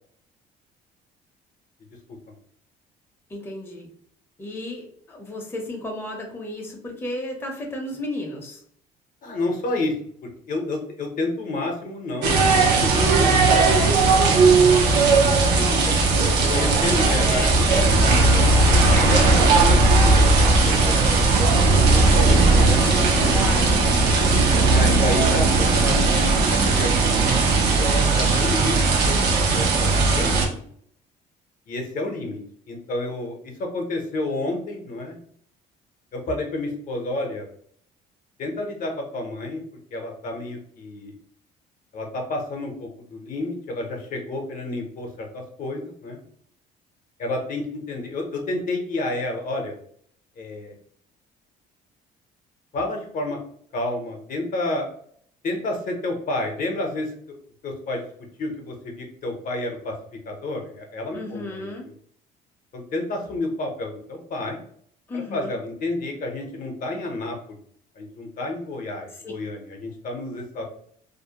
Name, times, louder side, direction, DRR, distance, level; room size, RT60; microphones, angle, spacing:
voice 1, 3.3-3.9 4.4-8.6 17.2-19.1 23.3-23.8 61.1-61.9 65.1-65.6 69.2-69.3, left 1 dB, 15° left, 0 dB, 0.6 m, -33 dB
voice 2, 9.2-9.9 10.2-12.4 12.8-14.2 15.7-16.0 16.5-17.4 19.1-21.5 21.8-22.8 23.1-23.4 24.6-30.7 31.7-32.4 32.7-35.2 36.1-37.5 38.4-39.6 39.9-41.1 41.9-46.2 47.2-49.7 50.4-50.7 52.7-53.4 53.7-54.9 55.4-57.1 57.6-58.0 58.4-59.9 60.3-61.7 62.7-64.6 65.1-67.6 68.0-70.6, left 2 dB, 50° left, 2 dB, 0.7 m, -30 dB
sound 1, 12.2-30.5, right 3 dB, 80° right, 0.6 m, -17 dB
2.5 x 2.0 x 2.8 m, 0.62 s
cardioid pair, 110°, 17 cm